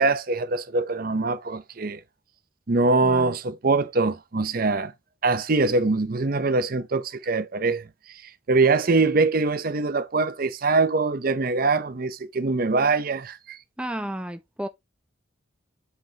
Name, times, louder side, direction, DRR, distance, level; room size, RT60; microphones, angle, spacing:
voice 1, 0.0-2.0 2.7-4.9 5.2-7.8 8.5-13.6, right 3 dB, 50° right, 0.7 m, -23 dB
voice 2, 3.0-3.4 13.8-14.7, right 1 dB, 5° right, 0.5 m, -32 dB
8.1 x 5.3 x 2.8 m
head